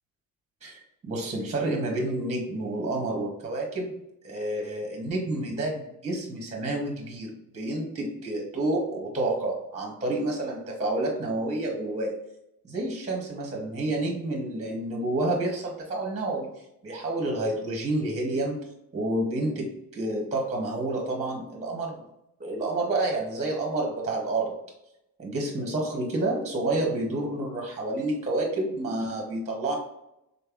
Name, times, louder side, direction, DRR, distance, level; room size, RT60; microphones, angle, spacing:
voice 1, 0.6-12.2 12.6-22.0 22.4-24.6 25.2-29.7, right 2 dB, 20° right, 1 dB, 0.8 m, -29 dB
5.3 x 3.9 x 2.3 m, 0.84 s
cardioid pair, 170°, 34 cm